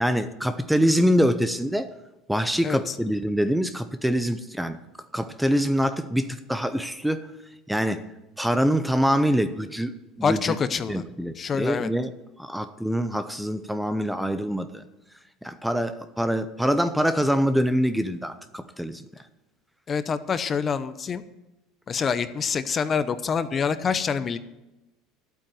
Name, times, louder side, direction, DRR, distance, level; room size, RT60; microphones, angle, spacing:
voice 1, 0.0-1.9 2.3-4.8 5.1-7.3 7.7-8.0 8.4-9.9 10.2-10.6 10.9-12.1 12.4-14.8 15.4-19.0, equal, ahead, 11 dB, 0.7 m, -24 dB
voice 2, 2.6-2.9 10.2-11.0 11.4-11.9 19.9-21.2 21.9-24.4, left 6 dB, 30° left, 12 dB, 0.8 m, -26 dB
12.0 x 8.8 x 7.7 m, 0.98 s
supercardioid pair, 125°, 0 cm